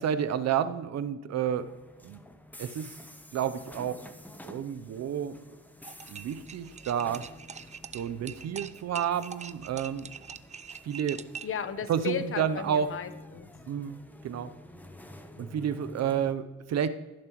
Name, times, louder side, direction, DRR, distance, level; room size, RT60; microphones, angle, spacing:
voice 1, 0.0-1.7 2.0-2.2 2.6-2.9 3.3-4.0 4.4-5.4 6.1-7.2 7.9-10.1 10.8-11.2 11.9-12.9 13.7-14.0 14.2-14.5 15.4-16.9, right 8 dB, 60° right, 12 dB, 0.7 m, -30 dB
sound 1, 1.4-16.3, left 1 dB, 5° left, 0.9 m, -50 dB
sound 2, 5.8-11.6, right 7 dB, 25° right, 0.4 m, -43 dB
voice 2, 11.4-13.5, left 8 dB, 45° left, 11 dB, 0.9 m, -35 dB
16.5 x 7.3 x 3.0 m, 1.2 s
cardioid pair, 90°, 30 cm